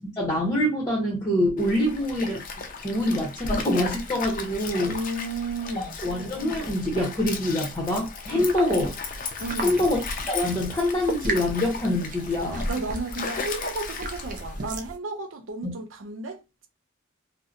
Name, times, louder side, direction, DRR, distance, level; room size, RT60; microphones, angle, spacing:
voice 1, 0.0-2.4 2.8-5.0 5.8-8.9 9.6-10.0 10.3-12.7 15.6-15.7, left 1 dB, 20° left, 0.8 m, -25 dB
Stream, 1.6-14.6, left 4 dB, 45° left, 0.4 m, -36 dB
voice 2, 4.9-6.0 8.3-8.5 9.4-9.9 12.7-16.7, right 2 dB, 90° right, 0.6 m, -33 dB
sound 1, 8.4-15.0, right 1 dB, 45° right, 0.4 m, -35 dB
2.7 x 2.0 x 2.4 m
head